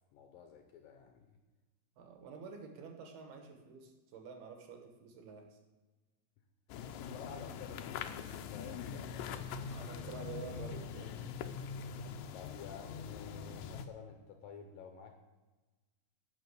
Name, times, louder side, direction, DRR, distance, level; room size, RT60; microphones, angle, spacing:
voice 1, 0.1-1.4 7.0-9.6 12.3-15.2, left 6 dB, 75° left, 5 dB, 2.2 m, -51 dB
voice 2, 2.0-5.6 9.4-11.6, right 5 dB, 70° right, 4 dB, 3.0 m, -50 dB
sound 1, 6.7-13.9, left 7 dB, 90° left, 1.9 m, -43 dB
11.5 x 6.3 x 7.9 m, 1.2 s
omnidirectional pair, 4.8 m